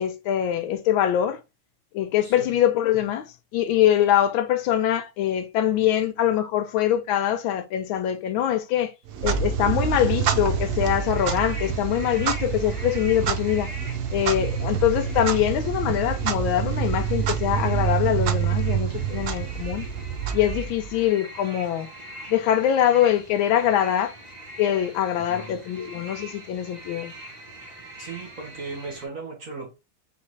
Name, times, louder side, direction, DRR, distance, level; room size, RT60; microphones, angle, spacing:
voice 1, 0.0-1.4 1.9-3.3 3.5-8.9 9.2-13.7 14.1-19.8 20.3-21.9 22.3-24.1 24.6-27.1, left 11 dB, 80° left, 1.3 m, -23 dB
voice 2, 2.2-2.6 25.3-25.6 28.0-29.7, right 4 dB, 50° right, 1.3 m, -37 dB
Clock, 9.1-21.0, right 8 dB, 70° right, 0.9 m, -27 dB
sound 1, 10.9-29.1, right 1 dB, 25° right, 0.9 m, -43 dB
3.9 x 3.4 x 3.1 m
omnidirectional pair, 2.3 m